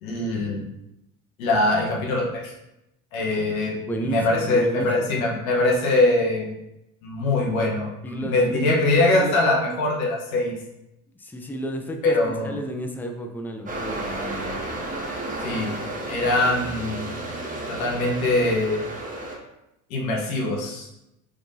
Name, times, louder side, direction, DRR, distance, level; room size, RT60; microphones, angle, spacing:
voice 1, 0.0-0.6 1.4-2.5 3.1-6.5 7.0-10.5 12.0-12.6 15.4-15.7 16.1-17.0 17.7-18.8 19.9-20.9, left 2 dB, 80° left, -2 dB, 1.2 m, -22 dB
voice 2, 3.9-5.2 8.0-9.3 11.2-12.1 12.4-14.6, equal, 5° left, 4 dB, 0.5 m, -32 dB
sound 1, 13.7-19.4, right 2 dB, 20° right, 1.2 m, -32 dB
4.8 x 3.7 x 2.7 m, 0.87 s
hypercardioid pair, 75°, 41 cm